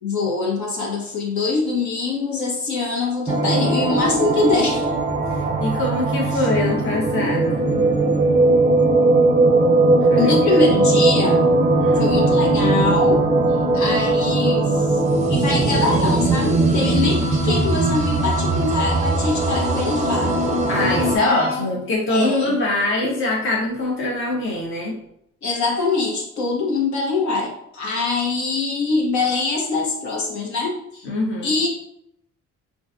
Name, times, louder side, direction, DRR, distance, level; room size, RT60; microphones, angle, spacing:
voice 1, 0.0-4.9 10.2-11.5 12.0-13.2 13.7-15.0 15.3-20.3 21.2-21.7 22.1-22.5 25.4-31.1 31.4-31.7, left 3 dB, 70° left, -2 dB, 1.1 m, -23 dB
sound 1, 3.3-21.2, right 2 dB, 25° right, 0.6 m, -19 dB
voice 2, 5.3-7.6 10.1-10.6 11.8-12.2 20.7-25.0 31.0-31.5, left 2 dB, 40° left, -3 dB, 0.9 m, -23 dB
3.7 x 2.5 x 2.6 m, 0.76 s
cardioid pair, 90°, 30 cm